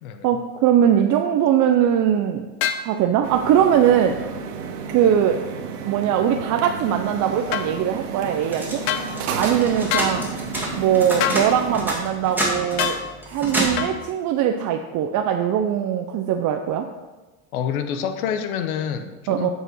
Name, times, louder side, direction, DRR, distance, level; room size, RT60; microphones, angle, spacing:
voice 1, 0.2-2.5 2.8-4.2 4.9-5.4 5.9-8.8 9.3-10.2 10.7-13.0 13.3-16.9 19.3-19.5, right 9 dB, 45° right, 5 dB, 0.6 m, -20 dB
sound 1, 2.6-2.9 7.5-7.7 8.9-9.1 9.9-10.1 11.2-11.4 12.8-13.0 13.8-13.9, left 10 dB, 65° left, 0.9 m, -24 dB
sound 2, 3.2-11.9, right 5 dB, 90° right, 1.2 m, -32 dB
sound 3, 8.4-13.9, right 1 dB, 5° right, 2.2 m, -28 dB
voice 2, 17.5-19.5, left 8 dB, 90° left, 8 dB, 0.9 m, -27 dB
7.8 x 5.0 x 6.3 m, 1.2 s
supercardioid pair, 115°, 42 cm